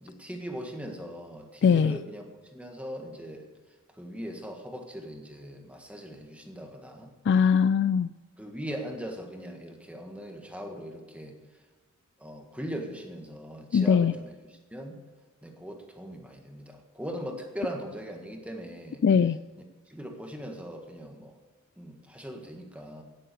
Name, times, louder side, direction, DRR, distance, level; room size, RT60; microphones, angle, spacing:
voice 1, 0.0-3.5 4.0-7.1 8.4-11.4 12.2-15.0 15.4-19.0 19.9-21.4 21.8-23.0, equal, 5° right, 3 dB, 1.7 m, -40 dB
voice 2, 1.6-2.0 7.3-8.1 13.7-14.1 19.0-19.4, left 6 dB, 55° left, 15 dB, 0.3 m, -21 dB
17.0 x 7.6 x 6.9 m, 1.3 s
head